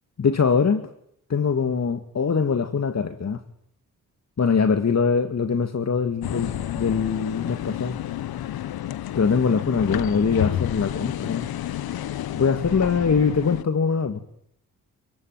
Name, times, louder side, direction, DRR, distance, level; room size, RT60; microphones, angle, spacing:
voice 1, 0.2-0.9 1.3-3.4 4.4-8.0 9.2-11.5 12.3-14.2, left 5 dB, 45° left, 2.2 m, -22 dB
sound 1, 6.2-13.6, left 12 dB, 75° left, 1.3 m, -30 dB
27.5 x 22.5 x 9.2 m
supercardioid pair, 55°, 37 cm